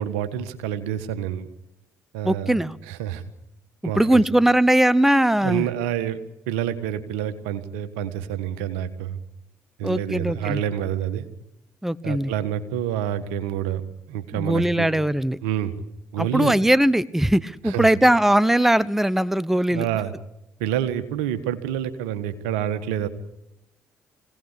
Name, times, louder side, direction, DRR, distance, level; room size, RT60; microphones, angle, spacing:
voice 1, 0.0-1.5 2.1-2.5 2.9-3.2 3.8-4.2 5.4-6.2 6.5-9.2 9.8-11.2 12.0-14.9 15.4-15.7 16.1-16.5 17.6-17.9 19.7-20.1 20.6-23.1, right 10 dB, 80° right, 11 dB, 1.5 m, -27 dB
voice 2, 2.2-2.8 3.8-5.7 9.8-10.6 11.8-12.3 14.3-15.4 16.2-19.9, right 1 dB, 5° right, 19 dB, 0.8 m, -20 dB
24.0 x 17.5 x 8.3 m, 0.85 s
hypercardioid pair, 55°, 7 cm